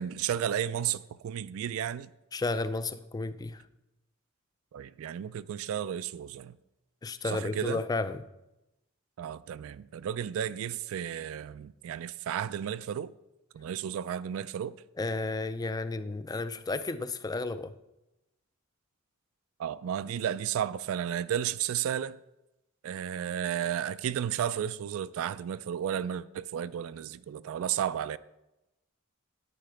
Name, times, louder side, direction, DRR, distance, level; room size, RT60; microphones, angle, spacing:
voice 1, 0.0-2.1 4.7-6.6 7.2-7.8 9.2-13.1 13.5-14.8 19.6-22.2 22.8-28.2, right 9 dB, 70° right, 0.3 m, -33 dB
voice 2, 2.3-3.6 7.0-8.2 15.0-17.7, left 3 dB, 20° left, 0.3 m, -32 dB
9.8 x 9.2 x 3.3 m
head